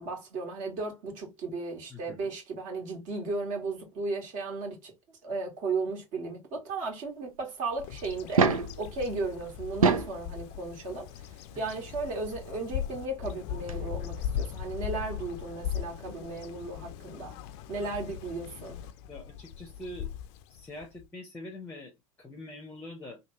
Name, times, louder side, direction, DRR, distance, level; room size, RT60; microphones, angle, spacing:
voice 1, 0.0-8.5 8.8-11.1 11.6-17.4 17.7-18.8, right 3 dB, 50° right, 1.7 m, -35 dB
voice 2, 1.9-2.3 19.1-20.1 20.5-23.2, left 1 dB, 10° left, 0.7 m, -44 dB
Bird vocalization bird call bird song, 7.8-21.1, left 9 dB, 55° left, 0.4 m, -39 dB
sound 1, 8.2-8.8 9.6-10.2 11.5-11.6 13.4-13.5 13.7-13.8, right 5 dB, 90° right, 0.5 m, -24 dB
3.3 x 2.3 x 3.0 m
hypercardioid pair, 90°, 17 cm